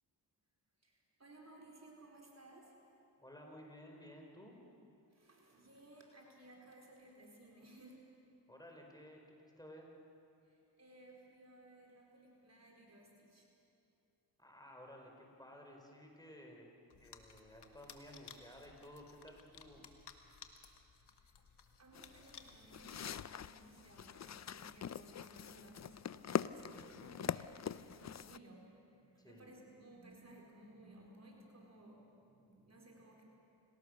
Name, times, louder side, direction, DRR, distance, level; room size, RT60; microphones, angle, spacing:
voice 1, 0.8-2.8 5.1-8.1 10.4-13.5 21.0-21.3 21.8-33.2, right 1 dB, 40° right, -1 dB, 4.5 m, -59 dB
voice 2, 3.2-4.6 8.5-9.9 14.4-16.7 17.0-19.8 29.2-29.5, equal, 10° left, 1 dB, 5.3 m, -55 dB
sound 1, 16.9-23.5, left 6 dB, 70° left, 1.8 m, -59 dB
sound 2, 21.9-28.4, left 8 dB, 40° left, 0.6 m, -43 dB
28.0 x 18.5 x 6.8 m, 2.6 s
cardioid pair, 55°, 42 cm